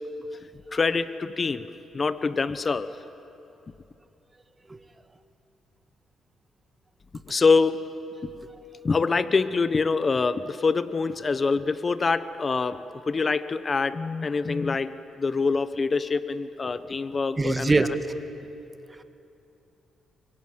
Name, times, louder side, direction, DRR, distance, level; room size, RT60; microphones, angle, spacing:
voice 1, 0.7-1.7 1.9-2.9 7.3-7.9 8.8-12.8 13.1-17.7, left 4 dB, 40° left, 13 dB, 1.0 m, -25 dB
voice 2, 17.4-17.9 18.9-19.0, right 3 dB, 25° right, 8 dB, 1.7 m, -23 dB
24.0 x 22.5 x 9.1 m, 2.9 s
supercardioid pair, 65°, 0 cm